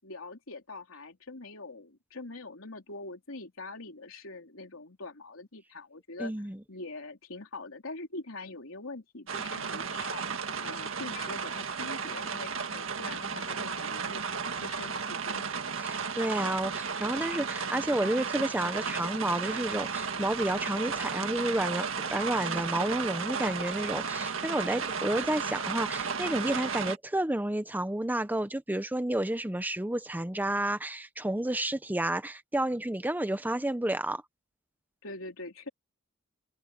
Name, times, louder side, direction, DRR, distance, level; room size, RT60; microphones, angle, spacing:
voice 1, 0.0-6.3 6.7-15.5 35.0-35.7, left 2 dB, 80° left, 3.4 m, -43 dB
voice 2, 6.2-6.6 15.8-34.2, right 1 dB, 10° right, 0.7 m, -31 dB
sound 1, 9.3-27.0, right 5 dB, 70° right, 1.8 m, -34 dB
head